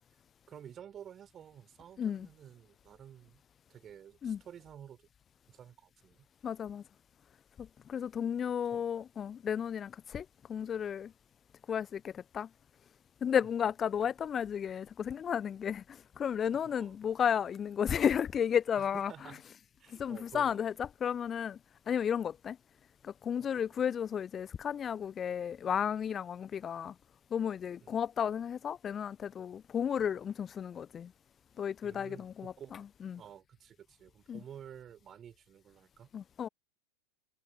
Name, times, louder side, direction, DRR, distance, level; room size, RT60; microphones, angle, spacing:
voice 1, 0.5-3.4 3.7-5.1 5.5-6.3 8.7-8.9 13.4-13.5 14.0-14.1 16.5-17.0 18.8-19.4 19.8-20.8 23.4-23.8 27.8-28.0 31.8-32.8 33.2-36.1, right 9 dB, 25° right, 5.3 m, -52 dB
voice 2, 2.0-2.3 4.2-4.4 6.4-6.8 7.6-11.1 11.7-12.5 13.2-19.1 19.9-21.6 21.9-22.6 23.0-26.9 27.3-31.1 31.6-33.2 34.3-34.4 36.1-36.5, left 8 dB, 25° left, 0.5 m, -33 dB
figure-of-eight pair, 90°, 0 cm